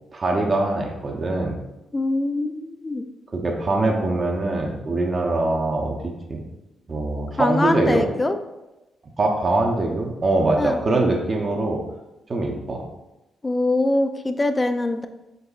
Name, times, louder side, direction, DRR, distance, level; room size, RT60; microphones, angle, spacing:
voice 1, 0.1-1.6 3.3-6.4 6.9-8.1 9.2-11.8 12.3-12.8, right 2 dB, 40° right, 1 dB, 0.8 m, -23 dB
voice 2, 1.9-3.1 7.4-8.4 10.6-10.8 13.4-15.1, left 2 dB, 25° left, 8 dB, 0.4 m, -23 dB
5.2 x 3.7 x 2.4 m, 0.97 s
cardioid pair, 75°, 0 cm